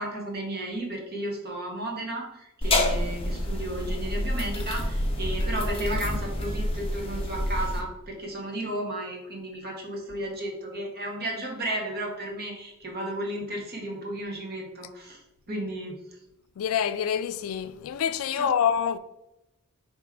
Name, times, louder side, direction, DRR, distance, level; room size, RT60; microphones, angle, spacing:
voice 1, 0.0-15.2 15.5-16.0 18.3-18.5, right 1 dB, 50° right, 1.2 m, -33 dB
sound 1, 2.6-7.8, left 1 dB, 25° left, 0.6 m, -28 dB
voice 2, 16.6-19.0, left 8 dB, 70° left, 0.3 m, -26 dB
3.6 x 3.0 x 4.6 m
head